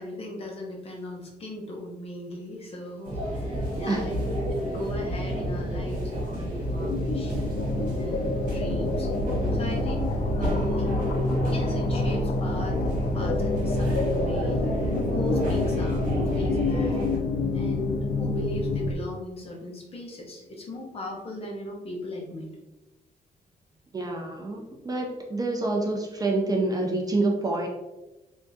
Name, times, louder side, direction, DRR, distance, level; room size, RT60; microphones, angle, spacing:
voice 1, 0.0-7.4 7.9-9.1 9.5-11.1 11.4-12.9 13.1-17.0 17.5-22.5, left 1 dB, 40° left, 0 dB, 0.8 m, -37 dB
sound 1, 3.0-17.2, equal, 55° right, 1.5 m, -30 dB
sound 2, 6.6-18.9, left 2 dB, 60° left, 0.4 m, -28 dB
voice 2, 23.9-27.7, right 2 dB, 25° right, 1 dB, 0.5 m, -27 dB
3.5 x 3.3 x 2.6 m, 1.0 s
wide cardioid pair, 165°, 16 cm